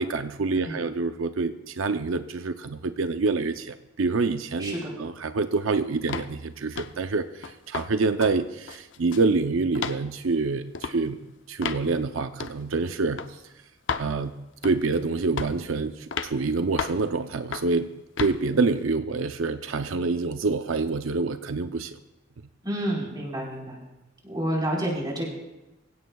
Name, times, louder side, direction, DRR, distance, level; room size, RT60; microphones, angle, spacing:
voice 1, 0.0-13.2 14.0-14.4 14.6-17.9 18.2-22.0, right 3 dB, 85° right, 9 dB, 0.6 m, -27 dB
voice 2, 0.5-0.9 4.6-4.9 22.6-23.8 24.2-25.3, right 1 dB, 20° right, -2 dB, 4.3 m, -29 dB
sound 1, 6.1-6.3 6.7-7.0 7.4-7.9 8.2-8.4 8.7-9.3 9.7-10.0 10.7-11.0 11.6-11.8 12.4-12.6 13.2-13.3 13.9-14.1 14.6-14.9 15.4-15.6 16.1-16.3 16.8-17.0 17.5-17.7 18.2-18.4, left 5 dB, 70° left, 0.7 m, -32 dB
24.5 x 16.0 x 2.3 m, 0.99 s
head